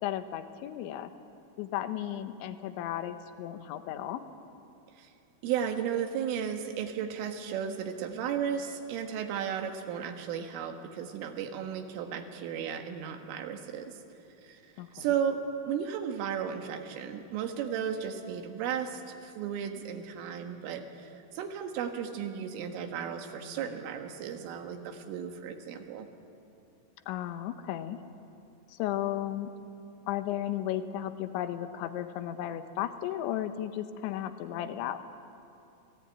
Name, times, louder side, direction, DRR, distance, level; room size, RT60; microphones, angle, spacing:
voice 1, 0.0-1.1 1.6-4.2 14.8-15.1 27.1-28.0 28.7-29.5 30.1-35.0, left 12 dB, 75° left, 9 dB, 3.3 m, -34 dB
voice 2, 5.4-13.9 14.4-14.6 14.9-15.4 15.7-26.1, right 8 dB, 90° right, 5 dB, 4.2 m, -34 dB
28.0 x 18.0 x 9.2 m, 2.7 s
omnidirectional pair, 5.6 m